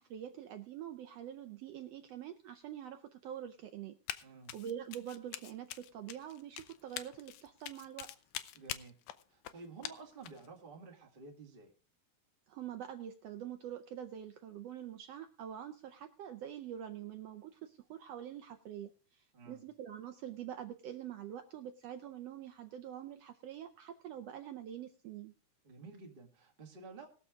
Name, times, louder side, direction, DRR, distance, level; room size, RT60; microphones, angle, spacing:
voice 1, 0.0-3.9 4.5-8.1 12.5-25.3, right 10 dB, 85° right, 7 dB, 1.4 m, -45 dB
Run, 4.1-4.2 4.5-10.5, left 13 dB, 80° left, 2.1 m, -44 dB
voice 2, 4.2-4.5 8.5-9.0 9.3-11.7 19.3-19.7 25.6-27.1, right 4 dB, 20° right, 1 dB, 1.5 m, -52 dB
20.5 x 6.9 x 3.6 m, 0.40 s
omnidirectional pair, 3.6 m